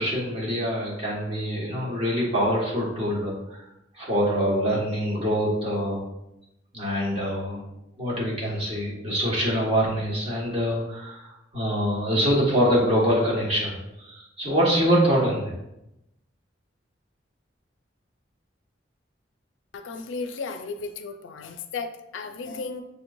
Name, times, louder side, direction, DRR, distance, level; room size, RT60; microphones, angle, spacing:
voice 1, 0.0-3.6 3.9-6.0 6.7-7.6 8.0-15.5, equal, 30° right, -5 dB, 1.5 m, -25 dB
voice 2, 19.7-22.8, left 4 dB, 90° left, 8 dB, 0.4 m, -34 dB
6.9 x 3.0 x 2.6 m, 0.87 s
head